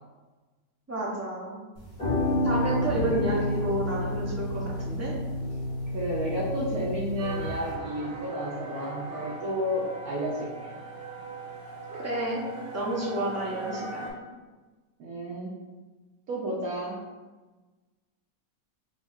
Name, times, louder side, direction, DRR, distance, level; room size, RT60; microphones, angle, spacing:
voice 1, 0.9-1.7 2.4-5.1 12.0-12.5 12.7-14.1, right 1 dB, 20° right, -5 dB, 0.4 m, -30 dB
sound 1, 1.7-7.7, left 1 dB, 30° left, 1.3 m, -30 dB
voice 2, 5.9-10.7 15.0-15.5 16.3-17.0, equal, 65° right, -4 dB, 1.0 m, -32 dB
sound 2, 7.2-14.1, right 2 dB, 85° right, 1.7 m, -40 dB
4.3 x 2.3 x 4.2 m, 1.3 s
omnidirectional pair, 1.8 m